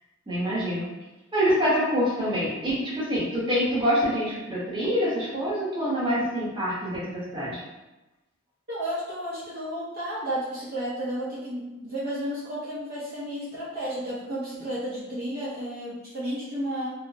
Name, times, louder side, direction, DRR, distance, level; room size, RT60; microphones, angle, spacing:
voice 1, 0.3-0.9 1.3-7.6, equal, 25° right, -7 dB, 0.9 m, -26 dB
voice 2, 8.7-16.9, equal, 50° right, -8 dB, 0.6 m, -32 dB
3.2 x 2.0 x 2.6 m, 1.0 s
head